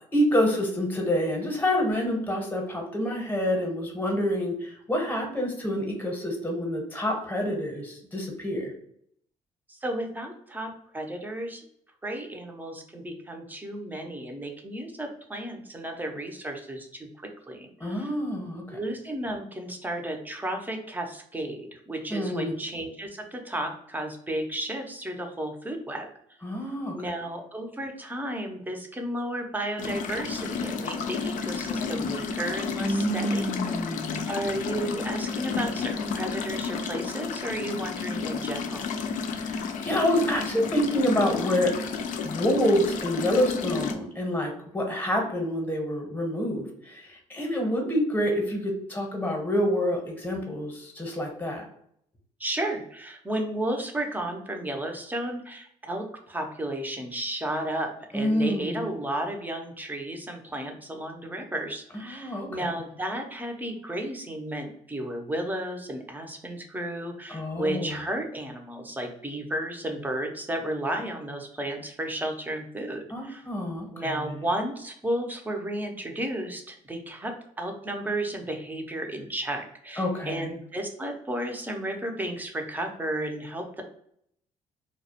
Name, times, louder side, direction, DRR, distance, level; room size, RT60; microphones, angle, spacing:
voice 1, 0.1-8.7 17.8-18.8 22.1-22.5 26.4-26.9 32.8-34.3 39.2-41.8 42.2-51.6 58.1-58.9 62.1-62.7 67.3-68.0 73.1-74.1 80.0-80.5, equal, 15° left, 1 dB, 0.8 m, -27 dB
voice 2, 9.7-11.6 12.0-18.1 18.7-26.1 26.9-33.5 34.3-38.9 52.4-73.5 73.9-83.8, right 1 dB, 15° right, 3 dB, 0.5 m, -33 dB
sound 1, 29.8-43.9, left 5 dB, 65° left, 0.4 m, -31 dB
2.3 x 2.0 x 2.7 m, 0.69 s
cardioid pair, 90°, 14 cm